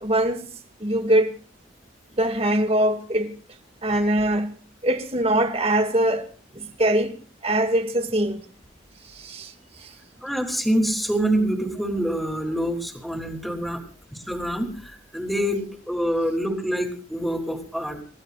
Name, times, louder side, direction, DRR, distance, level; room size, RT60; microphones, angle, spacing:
voice 1, 0.0-0.4 0.8-1.3 2.2-3.3 3.8-4.5 4.8-6.2 6.6-7.1 7.4-8.4 9.2-9.5, right 1 dB, 30° right, 2.2 m, -22 dB
voice 2, 10.2-13.8 14.1-18.0, equal, ahead, 3.2 m, -26 dB
30.0 x 16.0 x 2.4 m
head